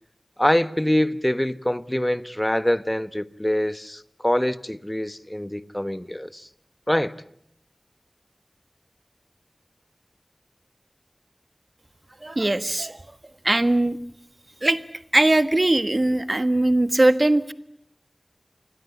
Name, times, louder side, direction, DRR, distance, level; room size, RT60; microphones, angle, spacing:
voice 1, 0.4-6.5 6.9-7.1, left 1 dB, 20° left, 1.1 m, -24 dB
voice 2, 12.2-13.0 13.4-14.0 14.6-14.8 15.1-17.5, right 2 dB, 55° right, 1.5 m, -20 dB
27.5 x 21.5 x 8.3 m
wide cardioid pair, 45°, 0 cm